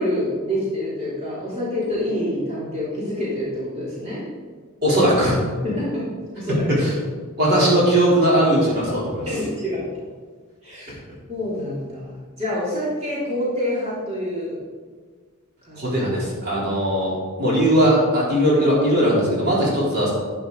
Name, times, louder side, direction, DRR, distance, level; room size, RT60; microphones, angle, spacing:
voice 1, 0.0-4.2 5.6-6.0 6.3-6.6 9.2-9.8 10.6-11.0 11.3-14.6 15.6-15.9, left 1 dB, 30° right, -8 dB, 3.3 m, -27 dB
voice 2, 4.8-5.3 6.8-6.9 7.4-9.3 15.8-20.1, equal, 45° right, -6 dB, 3.6 m, -19 dB
11.5 x 9.2 x 4.0 m, 1.5 s
head